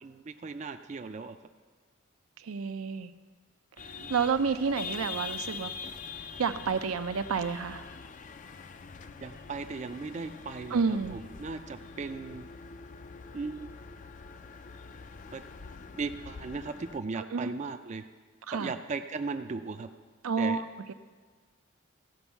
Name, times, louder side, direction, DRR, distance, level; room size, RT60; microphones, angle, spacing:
voice 1, 0.0-1.4 4.0-4.1 9.2-12.5 13.3-13.7 15.3-15.4 16.0-18.0 18.5-19.9 20.4-20.6, right 4 dB, 35° right, 8 dB, 0.3 m, -37 dB
voice 2, 2.4-3.1 4.1-5.7 6.4-7.8 10.7-11.2 17.2-17.5 18.5-18.7 20.2-20.9, right 5 dB, 85° right, 11 dB, 0.5 m, -30 dB
sound 1, 3.8-17.0, left 5 dB, 35° left, 0.4 m, -44 dB
14.5 x 5.4 x 7.0 m, 1.5 s
head